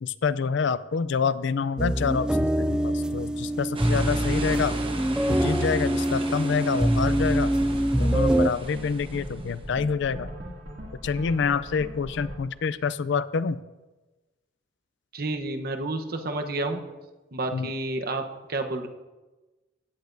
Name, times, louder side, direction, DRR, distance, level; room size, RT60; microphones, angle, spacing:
voice 1, 0.0-4.7 5.3-7.5 8.0-10.3 11.0-13.6 17.5-17.7, left 5 dB, 70° left, 16 dB, 0.4 m, -27 dB
sound 1, 1.8-8.5, right 1 dB, 5° right, 0.3 m, -24 dB
sound 2, 3.7-9.7, right 2 dB, 30° right, 1.1 m, -37 dB
sound 3, 7.3-12.3, equal, 75° right, 2.4 m, -40 dB
voice 2, 15.1-16.8 17.3-18.2 18.5-18.9, right 2 dB, 55° right, 5 dB, 1.0 m, -30 dB
16.0 x 10.0 x 2.7 m, 1.1 s
head